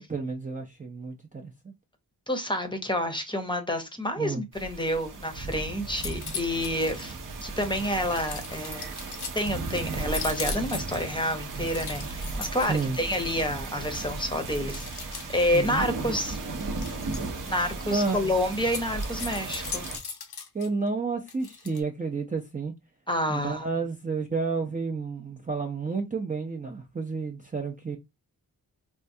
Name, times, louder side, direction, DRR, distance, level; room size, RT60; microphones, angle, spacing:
voice 1, 0.0-1.7 4.2-4.4 12.7-13.0 15.5-15.8 17.9-18.4 20.5-22.7 23.3-28.0, right 4 dB, 20° right, 0.5 m, -31 dB
voice 2, 2.3-9.0 9.3-16.4 17.5-19.9 23.1-23.6, left 1 dB, 15° left, 0.7 m, -29 dB
sound 1, 4.5-20.0, right 3 dB, 55° right, 0.7 m, -35 dB
sound 2, 5.3-5.5 5.9-7.1 7.6-9.5 10.0-11.1 11.6-13.5 13.9-14.1 14.7-15.7 16.6-17.5 18.6-20.7 21.3-21.8, left 6 dB, 90° left, 0.7 m, -39 dB
4.5 x 2.2 x 2.6 m
wide cardioid pair, 105°, 37 cm